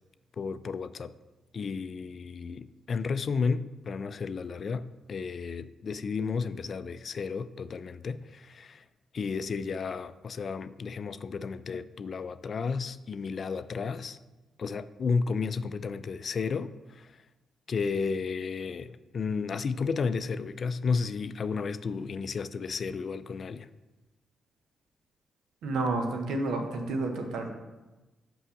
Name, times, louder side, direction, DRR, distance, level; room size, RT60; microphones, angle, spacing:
voice 1, 0.4-1.1 1.5-8.8 9.1-14.2 14.6-17.1 17.7-23.7, left 5 dB, 55° left, 0.4 m, -32 dB
voice 2, 25.6-27.5, right 2 dB, 75° right, 1.0 m, -30 dB
5.6 x 5.5 x 5.7 m
hypercardioid pair, 40°, 0 cm